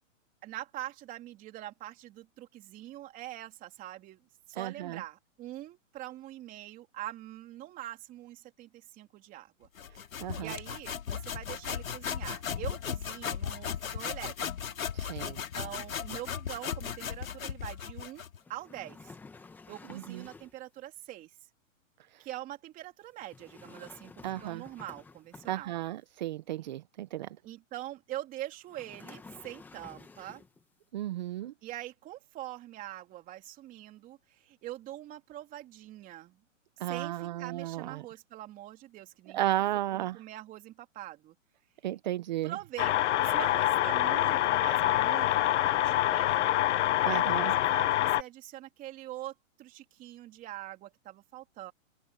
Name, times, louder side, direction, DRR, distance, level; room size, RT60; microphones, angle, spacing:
voice 1, 0.4-4.2 4.5-9.7 10.4-14.7 15.2-19.1 19.7-21.3 22.2-25.8 26.6-26.7 27.4-30.4 31.6-36.4 36.8-39.5 39.9-41.3 42.4-46.6 46.9-51.7, right 14 dB, 20° right, 3.1 m, -44 dB
voice 2, 4.6-5.0 10.2-10.5 14.9-15.4 19.9-20.2 22.1-22.2 24.2-24.6 25.5-27.3 30.9-31.5 36.8-38.0 39.3-40.2 41.8-42.5 47.0-47.5, right 14 dB, 35° right, 0.6 m, -34 dB
sound 1, 9.8-18.4, left 8 dB, 90° left, 2.4 m, -36 dB
sound 2, 18.4-20.7 23.2-25.9 28.7-30.6, left 4 dB, 5° left, 1.1 m, -51 dB
sound 3, 42.8-48.2, left 13 dB, 60° left, 0.5 m, -26 dB
open air
hypercardioid pair, 160°, 40 cm